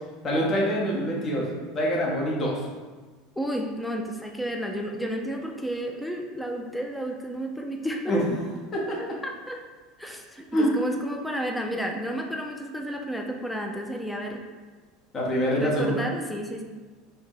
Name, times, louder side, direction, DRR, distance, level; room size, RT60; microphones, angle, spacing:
voice 1, 0.2-1.5 1.7-2.6 8.1-8.2 8.7-9.0 10.5-10.7 15.1-16.0, equal, 30° left, -2 dB, 0.8 m, -25 dB
voice 2, 3.4-8.1 9.0-9.6 10.0-14.4 15.5-16.6, equal, 5° left, 2 dB, 0.3 m, -32 dB
2.7 x 2.7 x 3.7 m, 1.3 s
figure-of-eight pair, 75°, 0 cm